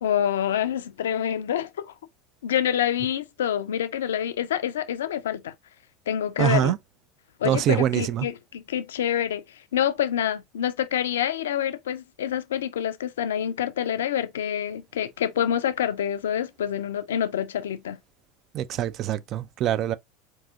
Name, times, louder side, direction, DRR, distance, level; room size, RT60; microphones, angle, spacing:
voice 1, 0.0-1.9 2.4-5.5 6.1-6.7 7.4-9.4 9.7-18.0, left 10 dB, 70° left, 0.4 m, -27 dB
voice 2, 6.4-6.8 7.4-8.3 18.5-19.9, right 11 dB, 40° right, 0.3 m, -24 dB
4.6 x 2.6 x 2.4 m
figure-of-eight pair, 75°, 0 cm